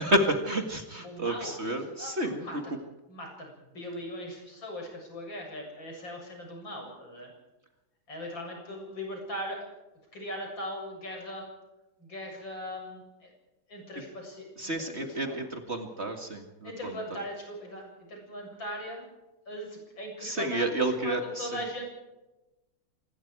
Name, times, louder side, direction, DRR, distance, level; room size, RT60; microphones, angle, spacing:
voice 1, 0.0-2.5 14.6-17.2 20.2-21.6, right 1 dB, 35° right, 5 dB, 2.2 m, -30 dB
voice 2, 1.0-1.5 2.0-2.1 2.4-2.8 3.1-7.3 8.1-9.7 10.1-11.5 12.0-13.3 13.7-14.9 15.2-15.4 16.6-19.1 19.5-20.7 21.0-21.8, equal, 65° left, 1 dB, 8.2 m, -39 dB
26.0 x 21.0 x 4.8 m, 1.0 s
omnidirectional pair, 2.2 m